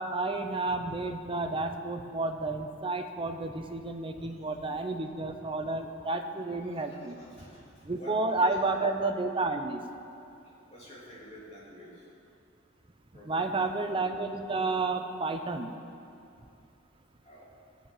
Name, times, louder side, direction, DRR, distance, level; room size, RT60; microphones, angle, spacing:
voice 1, 0.0-7.2 7.8-9.8 13.3-15.7, right 3 dB, 25° right, 6 dB, 0.7 m, -31 dB
voice 2, 4.2-4.7 5.5-5.8 6.6-9.0 10.4-12.1 13.1-13.9 17.2-17.5, equal, 35° left, -6 dB, 3.0 m, -50 dB
16.0 x 7.2 x 5.7 m, 2.6 s
head